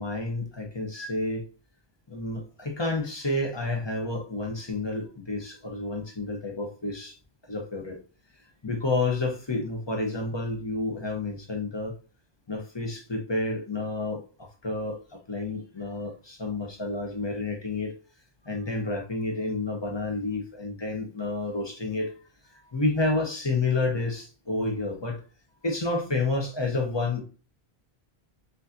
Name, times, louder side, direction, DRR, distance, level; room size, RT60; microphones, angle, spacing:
voice 1, 0.0-1.4 2.1-7.2 7.5-8.0 8.6-11.9 12.5-17.9 18.4-22.1 22.5-25.2 25.6-27.2, left 2 dB, 30° left, 2 dB, 0.8 m, -30 dB
6.7 x 2.6 x 2.6 m, 0.36 s
omnidirectional pair, 1.0 m